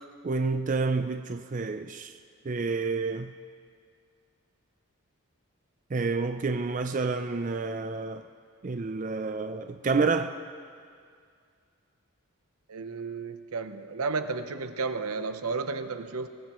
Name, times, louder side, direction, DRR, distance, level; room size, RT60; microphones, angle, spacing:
voice 1, 0.2-2.1 2.5-3.3 5.9-8.2 8.6-10.3, right 4 dB, 35° right, 0.4 m, -29 dB
voice 2, 12.7-16.3, right 4 dB, 85° right, 0.8 m, -32 dB
23.0 x 18.5 x 3.0 m
head